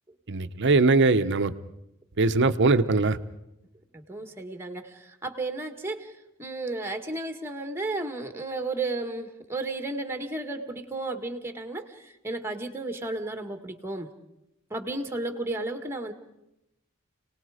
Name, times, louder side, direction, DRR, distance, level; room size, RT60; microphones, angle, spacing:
voice 1, 0.3-1.5 2.2-3.2, right 3 dB, 55° right, 10 dB, 0.9 m, -21 dB
voice 2, 3.9-6.1 6.4-14.1 14.7-16.1, right 2 dB, 10° right, 6 dB, 1.8 m, -33 dB
30.0 x 19.0 x 5.0 m, 0.84 s
head